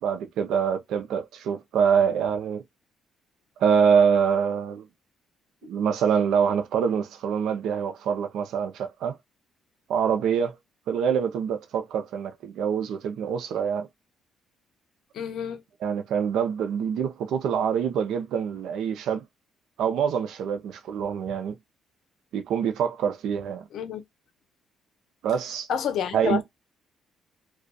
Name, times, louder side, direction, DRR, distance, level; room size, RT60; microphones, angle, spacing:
voice 1, 0.0-2.6 3.6-4.9 5.6-9.2 9.9-10.6 10.9-13.9 15.8-19.2 19.8-21.5 22.3-23.6 25.2-25.7 26.1-26.4, right 7 dB, 80° right, 0.5 m, -25 dB
voice 2, 15.1-15.6 23.7-24.0 25.7-26.4, left 8 dB, 70° left, 0.5 m, -29 dB
2.3 x 2.3 x 2.5 m
cardioid pair, 85°, 0 cm